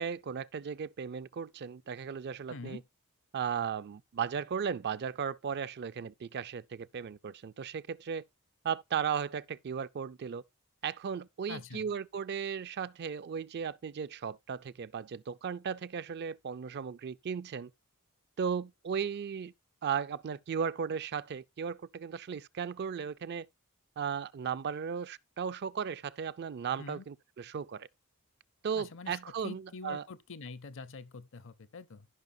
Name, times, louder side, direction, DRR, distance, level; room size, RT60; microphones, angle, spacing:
voice 1, 0.0-2.8 3.3-8.2 8.6-10.4 10.8-17.7 18.4-19.5 19.8-23.5 24.0-27.9 28.6-30.0, right 7 dB, 50° right, 0.4 m, -36 dB
voice 2, 2.5-2.8 11.5-11.9 26.8-27.0 28.7-32.1, left 4 dB, 60° left, 0.7 m, -45 dB
14.5 x 5.5 x 2.6 m
head